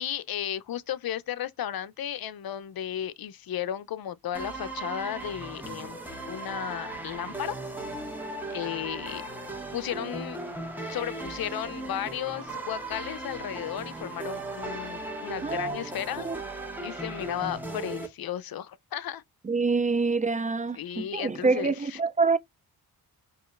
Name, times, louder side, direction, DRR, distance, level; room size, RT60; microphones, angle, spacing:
voice 1, 0.0-6.0 6.3-7.6 8.5-9.2 9.7-10.4 10.9-16.3 16.8-19.2 20.7-22.0, left 10 dB, 65° left, 0.6 m, -34 dB
sound 1, 4.3-18.1, right 2 dB, 5° right, 1.6 m, -37 dB
voice 2, 15.4-15.8 16.2-16.4 19.4-22.4, right 4 dB, 20° right, 0.4 m, -26 dB
4.8 x 3.0 x 2.4 m
cardioid pair, 65°, 38 cm